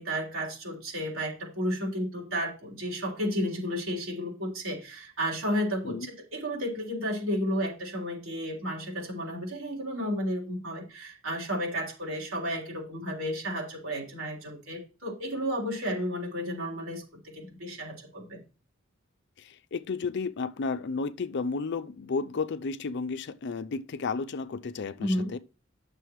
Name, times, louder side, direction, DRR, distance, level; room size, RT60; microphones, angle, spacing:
voice 1, 0.0-18.4 25.0-25.3, equal, 75° right, 3.7 m, -32 dB
voice 2, 19.4-25.4, left 4 dB, 55° left, 0.5 m, -33 dB
11.0 x 6.8 x 3.1 m
head